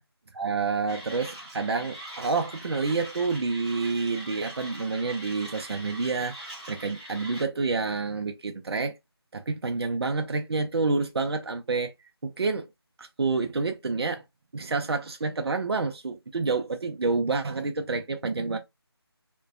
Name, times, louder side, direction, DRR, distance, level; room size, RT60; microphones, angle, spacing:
voice 1, 0.3-9.0 9.3-11.9 12.2-12.7 13.0-14.2 14.5-18.6, right 4 dB, 70° right, 0.4 m, -28 dB
Mechanisms, 0.9-7.4, right 1 dB, 15° right, 0.7 m, -42 dB
2.4 x 2.2 x 2.4 m
figure-of-eight pair, 165°, 14 cm